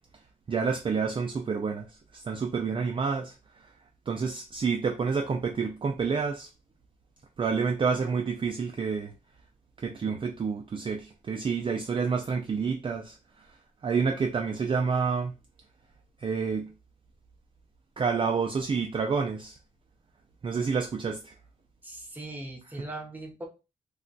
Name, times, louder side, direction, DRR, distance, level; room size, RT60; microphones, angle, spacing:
voice 1, 0.5-3.7 4.1-6.5 7.4-9.1 9.8-13.5 13.8-15.3 16.2-16.7 18.0-19.6 20.4-21.3, right 5 dB, 35° right, 2 dB, 0.3 m, -29 dB
voice 2, 21.8-23.5, right 1 dB, 10° right, 0 dB, 0.7 m, -39 dB
2.3 x 2.2 x 3.8 m, 0.29 s
wide cardioid pair, 145°, 15 cm